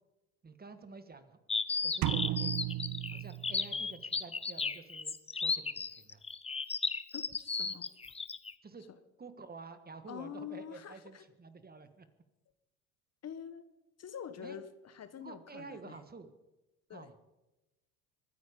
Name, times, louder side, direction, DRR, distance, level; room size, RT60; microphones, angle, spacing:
voice 1, 0.4-1.4 1.8-2.6 3.1-6.2 8.6-8.8 9.2-12.1 14.4-14.6 15.2-16.3 16.9-17.1, right 4 dB, 20° right, 10 dB, 1.6 m, -50 dB
sound 1, 1.5-8.5, left 4 dB, 15° left, 0.8 m, -34 dB
sound 2, 2.0-4.0, right 16 dB, 55° right, 0.7 m, -35 dB
voice 2, 7.1-7.9 10.1-11.2 13.2-13.6 14.0-16.0 16.9-17.1, left 8 dB, 35° left, 12 dB, 1.2 m, -45 dB
23.5 x 9.9 x 5.2 m, 1.0 s
hypercardioid pair, 80°, 42 cm